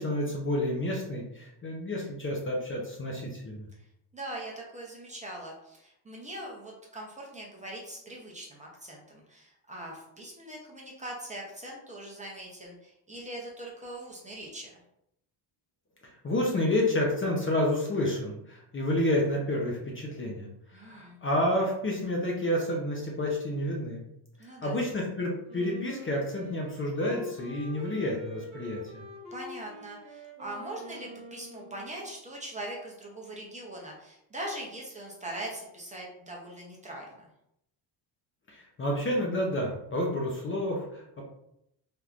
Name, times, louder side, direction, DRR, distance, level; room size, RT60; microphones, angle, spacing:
voice 1, 0.0-3.7 16.0-24.0 24.6-29.0 38.5-41.2, left 1 dB, 25° left, -1 dB, 0.6 m, -30 dB
voice 2, 4.1-14.8 20.7-21.2 24.4-24.8 29.3-37.3, right 1 dB, 15° right, -3 dB, 0.7 m, -41 dB
Wind instrument woodwind instrument, 25.5-32.2, left 2 dB, 35° right, 1.3 m, -46 dB
3.5 x 2.7 x 2.4 m, 0.79 s
cardioid pair, 110°, 47 cm